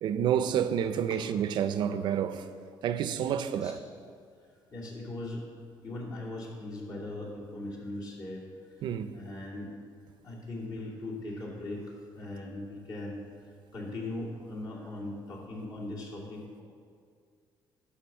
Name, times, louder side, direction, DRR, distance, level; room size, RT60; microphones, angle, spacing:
voice 1, 0.0-2.5 2.8-3.8 8.8-9.2, right 9 dB, 65° right, 0.5 m, -29 dB
voice 2, 3.2-3.8 4.7-5.4 5.8-8.4 8.8-8.9 9.1-9.7 10.2-13.2 13.7-16.6, left 2 dB, 50° left, 2.7 m, -39 dB
11.5 x 5.2 x 7.3 m
cardioid pair, 140°, 8 cm